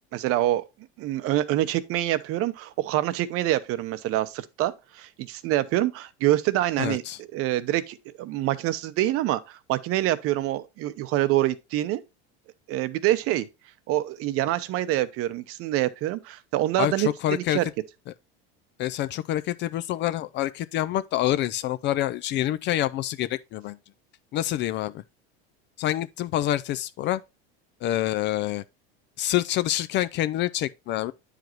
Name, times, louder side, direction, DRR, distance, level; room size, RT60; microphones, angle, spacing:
voice 1, 0.1-0.6 1.0-12.0 12.7-13.5 13.9-17.7, right 14 dB, 50° right, 0.7 m, -26 dB
voice 2, 6.8-7.2 16.8-17.6 18.8-23.8 24.3-25.0 25.8-27.2 27.8-28.6 29.2-31.1, left 13 dB, 40° left, 0.4 m, -27 dB
9.2 x 5.0 x 3.0 m
supercardioid pair, 120°, 30 cm